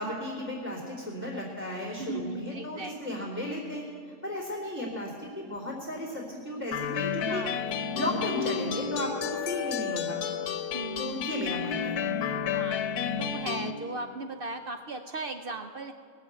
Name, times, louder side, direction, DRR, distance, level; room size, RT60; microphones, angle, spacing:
voice 1, 0.0-3.9 4.2-7.5 7.9-10.2 11.0-12.0, left 1 dB, 10° right, -10 dB, 2.9 m, -34 dB
voice 2, 2.0-2.9 7.3-7.7 9.2-9.5 10.7-11.3 12.5-15.9, right 3 dB, 75° right, 7 dB, 0.5 m, -37 dB
sound 1, 6.7-13.7, left 8 dB, 80° left, 1.2 m, -31 dB
20.0 x 6.8 x 8.1 m, 2.5 s
omnidirectional pair, 1.6 m